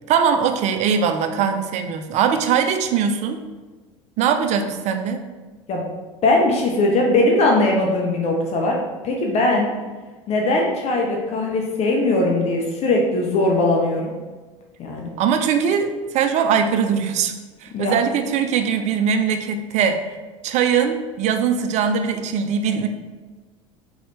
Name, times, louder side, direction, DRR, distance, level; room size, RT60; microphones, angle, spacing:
voice 1, 0.1-3.4 4.2-5.2 15.2-17.3 17.6-20.0 20.4-22.9, right 7 dB, 45° right, 7 dB, 0.5 m, -21 dB
voice 2, 6.2-9.7 10.3-14.1 14.8-15.1 17.7-18.0, left 2 dB, 40° left, 0 dB, 0.7 m, -20 dB
3.9 x 3.1 x 3.3 m, 1.3 s
hypercardioid pair, 80°, 16 cm